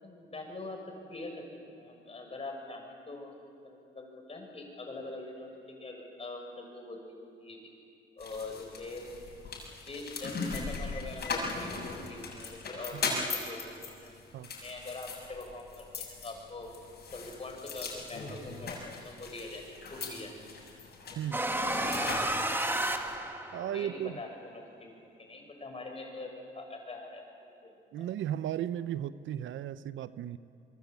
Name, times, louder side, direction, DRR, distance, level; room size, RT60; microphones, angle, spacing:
voice 1, 0.0-1.4 1.7-3.4 3.6-7.7 8.2-9.1 9.9-14.2 14.6-16.7 17.1-19.6 19.9-20.3 23.6-27.3 27.6-28.1, left 2 dB, 30° left, 2 dB, 6.8 m, -44 dB
sound 1, 8.2-23.1, left 4 dB, 55° left, 7.2 m, -39 dB
sound 2, 21.3-23.9, right 1 dB, 10° right, 1.9 m, -31 dB
voice 2, 23.5-24.1 27.9-30.4, right 11 dB, 75° right, 14 dB, 0.7 m, -35 dB
26.0 x 23.0 x 8.5 m, 2.5 s
cardioid pair, 90°, 20 cm